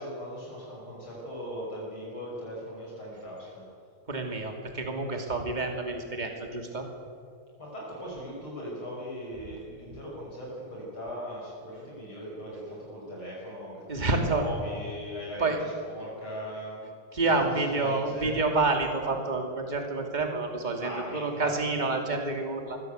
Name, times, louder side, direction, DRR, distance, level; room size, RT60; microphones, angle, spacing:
voice 1, 0.0-3.6 7.6-16.9 17.2-18.4 20.8-21.8, equal, 45° left, -4 dB, 6.7 m, -39 dB
voice 2, 4.1-6.9 13.9-14.5 15.4-15.6 17.1-22.8, right 3 dB, 15° right, 3 dB, 2.5 m, -28 dB
24.5 x 16.5 x 8.1 m, 2.3 s
omnidirectional pair, 3.3 m